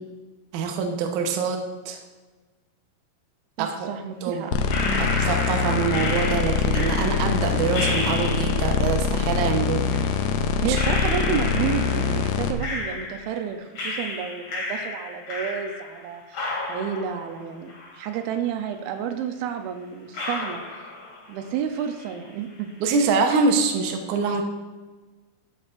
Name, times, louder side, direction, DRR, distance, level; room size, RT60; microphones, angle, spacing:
voice 1, 0.5-2.0 3.6-3.9 4.2-4.5 5.0-10.0 10.7-10.8 22.8-24.4, right 5 dB, 70° right, 4 dB, 2.2 m, -25 dB
voice 2, 3.6-5.1 10.6-20.6 21.3-22.7, right 8 dB, 85° right, 7 dB, 2.6 m, -31 dB
sound 1, 4.5-12.5, left 6 dB, 75° left, 2.3 m, -24 dB
sound 2, 4.7-8.8 9.9-10.0 10.7-13.4 13.8-16.0 16.3-18.4 18.7-18.8 19.5-19.6 20.1-21.5 21.7-22.3, left 2 dB, 45° left, 2.8 m, -32 dB
12.5 x 7.8 x 2.5 m, 1.3 s
omnidirectional pair, 4.2 m